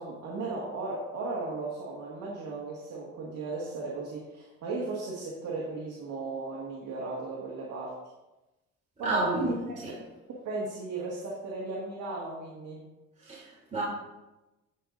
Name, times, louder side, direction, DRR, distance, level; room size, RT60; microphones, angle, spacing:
voice 1, 0.0-7.9 9.0-10.0 10.4-12.9, right 3 dB, 75° right, -4 dB, 1.9 m, -36 dB
voice 2, 9.0-9.5 13.2-13.8, right 2 dB, 25° right, -9 dB, 3.1 m, -30 dB
16.0 x 5.6 x 2.6 m, 1.0 s
cardioid pair, 90°, 30 cm